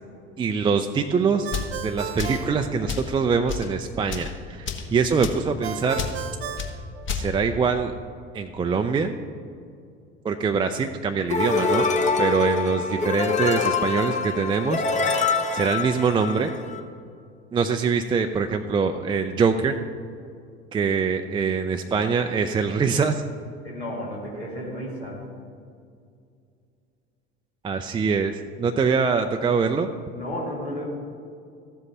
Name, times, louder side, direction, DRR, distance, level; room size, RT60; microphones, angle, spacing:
voice 1, 0.4-1.5 1.8-6.0 7.1-7.9 8.3-9.1 10.2-11.9 12.2-14.8 15.5-16.5 17.5-19.8 20.7-23.2 27.6-29.9, right 5 dB, 15° right, 5 dB, 0.4 m, -23 dB
Ringtone, 1.4-3.4 5.6-7.6, right 8 dB, 80° right, 0.6 m, -35 dB
sound 1, 1.5-1.7 2.2-2.5 2.9-3.1 3.5-3.7 4.0-4.3 4.7-4.9 5.2-5.4 6.0-6.2 6.6-6.7 7.1-7.3, left 6 dB, 40° left, 1.2 m, -30 dB
sound 2, 11.3-16.8, left 4 dB, 20° left, 0.8 m, -25 dB
voice 2, 23.6-25.2 30.1-30.8, equal, 85° left, -5 dB, 2.1 m, -33 dB
14.0 x 7.8 x 2.8 m, 2.3 s
figure-of-eight pair, 60°, 32 cm